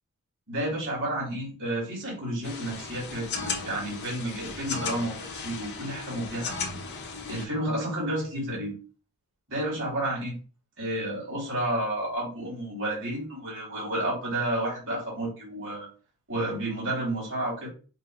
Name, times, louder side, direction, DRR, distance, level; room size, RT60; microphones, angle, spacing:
voice 1, 0.5-6.5 7.3-8.7 9.5-10.4 10.8-15.9 16.3-17.7, right 1 dB, 60° right, -5 dB, 2.5 m, -31 dB
sound 1, 2.4-7.5, left 4 dB, 50° left, 0.7 m, -36 dB
5.3 x 2.0 x 4.7 m, 0.37 s
head